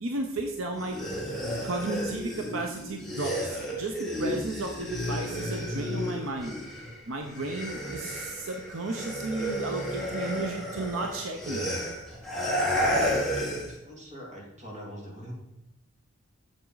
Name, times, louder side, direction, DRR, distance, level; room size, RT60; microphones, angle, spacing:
voice 1, 0.0-1.0 1.6-6.5 7.1-11.6, right 2 dB, 70° right, 3 dB, 0.9 m, -33 dB
sound 1, 0.7-7.0 7.2-13.8, equal, ahead, 1.9 m, -32 dB
voice 2, 13.8-15.3, equal, 35° right, -3 dB, 2.7 m, -43 dB
9.0 x 7.3 x 4.0 m, 0.92 s
head